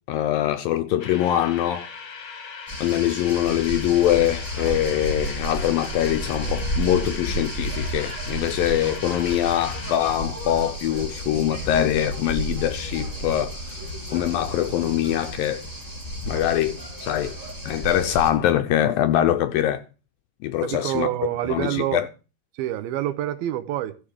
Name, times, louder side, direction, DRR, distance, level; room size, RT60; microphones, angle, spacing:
voice 1, 0.1-1.9 2.8-13.8 14.1-15.6 16.3-17.4 17.7-19.8 20.4-21.1 21.5-22.1, left 12 dB, 75° left, 2.2 m, -23 dB
sound 1, 1.0-10.0, left 5 dB, 45° left, 1.7 m, -39 dB
sound 2, 2.7-18.3, equal, 5° right, 2.2 m, -32 dB
voice 2, 20.6-22.0 22.5-24.0, right 13 dB, 80° right, 2.6 m, -27 dB
13.5 x 5.0 x 8.5 m
omnidirectional pair, 4.5 m